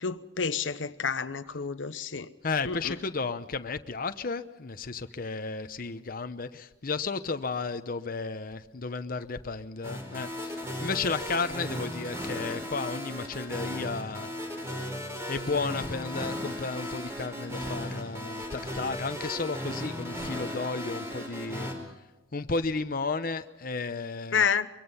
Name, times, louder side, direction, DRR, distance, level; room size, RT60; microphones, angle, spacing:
voice 1, 0.0-2.3 2.6-2.9 24.3-24.7, left 6 dB, 90° left, 11 dB, 0.9 m, -29 dB
voice 2, 2.4-14.3 15.3-21.7 22.3-24.4, left 4 dB, 50° left, 9 dB, 0.8 m, -33 dB
sound 1, 9.8-21.7, equal, 15° right, 4.8 m, -36 dB
24.0 x 23.0 x 5.6 m, 1.1 s
head